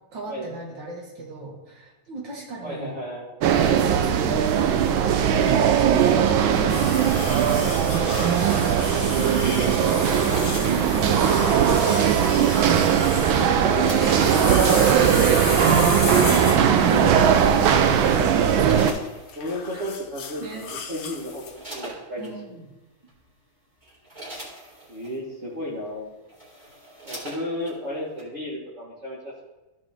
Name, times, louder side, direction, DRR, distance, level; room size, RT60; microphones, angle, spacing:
voice 1, 0.1-3.0 3.5-4.9 5.3-12.1 14.3-15.1 16.1-19.0 20.4-20.8 22.2-22.7, right 3 dB, 65° right, -1 dB, 2.5 m, -35 dB
voice 2, 2.6-3.4 8.4-8.6 9.5-9.6 13.3-14.2 16.7-17.2 19.3-22.6 24.9-26.1 27.0-29.5, equal, 40° right, -6 dB, 1.5 m, -33 dB
sound 1, 3.4-18.9, right 8 dB, 90° right, 1.5 m, -19 dB
sound 2, 6.7-21.6, left 7 dB, 65° left, 1.3 m, -34 dB
sound 3, 10.3-11.3 12.6-14.5 15.5-15.8 17.5-17.8 18.3-19.7 20.5-20.6 20.9-22.3 23.1-23.2 23.7-25.2 25.9-26.0 26.2-27.8 28.2-28.3, right 1 dB, 25° right, 2.3 m, -41 dB
13.5 x 5.4 x 3.5 m, 1.1 s
omnidirectional pair, 2.1 m